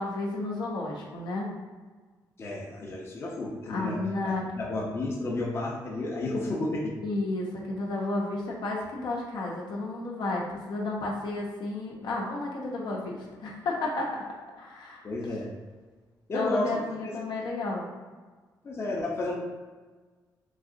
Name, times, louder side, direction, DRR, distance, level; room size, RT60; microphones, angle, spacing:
voice 1, 0.0-1.5 3.7-4.4 7.0-13.1 13.4-14.1 14.6-15.0 16.3-17.9, left 2 dB, 80° left, -2 dB, 0.7 m, -32 dB
voice 2, 2.4-6.9 15.0-15.5 16.3-16.8 18.6-19.4, left 2 dB, 35° left, -2 dB, 0.6 m, -32 dB
3.2 x 2.8 x 2.5 m, 1.4 s
cardioid pair, 120°, 7 cm